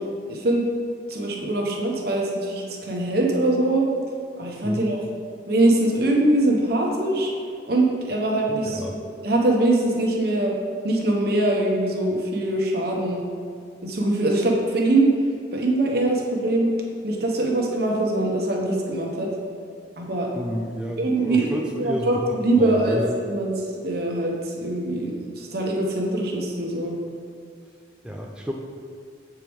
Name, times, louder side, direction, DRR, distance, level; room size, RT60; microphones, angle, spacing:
voice 1, 0.3-0.7 1.1-3.9 4.4-5.0 5.5-7.3 7.7-8.8 9.2-10.5 10.8-13.2 13.8-15.1 15.5-16.7 17.0-19.3 20.0-20.3 21.0-23.5 23.8-26.9, right 2 dB, 60° right, 0 dB, 1.0 m, -22 dB
voice 2, 8.5-9.0 20.3-23.0 28.0-28.5, equal, 5° right, -1 dB, 0.4 m, -30 dB
7.5 x 4.6 x 3.5 m, 2.2 s
head